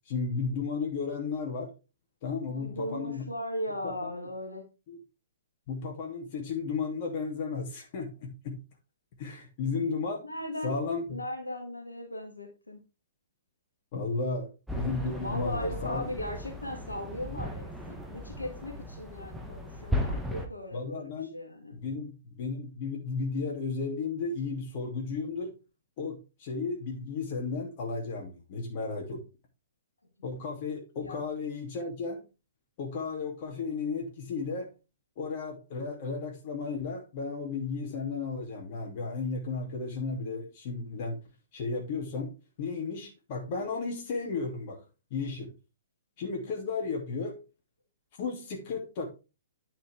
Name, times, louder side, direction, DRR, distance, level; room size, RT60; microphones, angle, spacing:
voice 1, 0.1-1.7 2.2-3.3 3.8-4.3 4.9-5.0 5.7-8.5 9.2-10.3 10.6-11.2 13.9-16.1 17.3-17.4 20.7-21.3 21.7-25.5 26.0-29.2 30.2-32.2 32.8-34.7 35.2-41.2 41.5-42.3 42.6-44.8 45.1-45.5 46.2-47.4 48.2-49.1, left 4 dB, 40° left, 1 dB, 2.9 m, -34 dB
voice 2, 2.5-4.7 10.2-10.8 11.1-12.8 15.2-21.8 30.9-31.2, left 1 dB, 80° left, 2 dB, 1.9 m, -38 dB
sound 1, 14.7-20.5, left 1 dB, 5° right, 1.3 m, -36 dB
9.4 x 5.8 x 3.7 m, 0.30 s
figure-of-eight pair, 120°, 0 cm